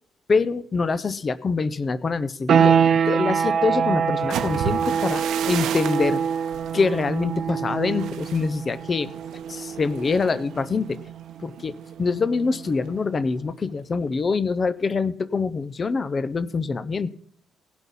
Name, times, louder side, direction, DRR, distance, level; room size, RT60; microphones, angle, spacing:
voice 1, 0.3-6.2 6.7-9.1 9.5-11.0 11.4-17.2, left 4 dB, 25° left, 16 dB, 0.5 m, -25 dB
sound 1, 2.5-13.0, right 7 dB, 45° right, 0.5 m, -25 dB
sound 2, 4.1-12.0 12.4-12.7 13.0-13.5, right 9 dB, 80° right, 0.9 m, -35 dB
17.5 x 6.1 x 5.4 m, 0.65 s
cardioid pair, 165°, 0 cm